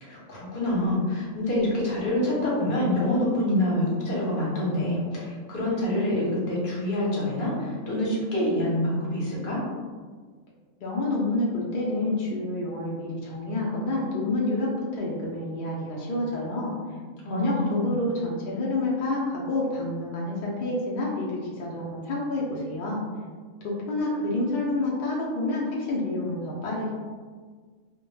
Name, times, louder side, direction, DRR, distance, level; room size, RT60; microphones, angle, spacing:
voice 1, 0.0-9.6 17.2-17.9, left 1 dB, 50° left, -5 dB, 0.8 m, -26 dB
voice 2, 10.8-16.7 17.3-23.0 23.6-26.9, left 2 dB, 70° left, -4 dB, 0.4 m, -28 dB
2.1 x 2.1 x 3.0 m, 1.5 s
omnidirectional pair, 1.4 m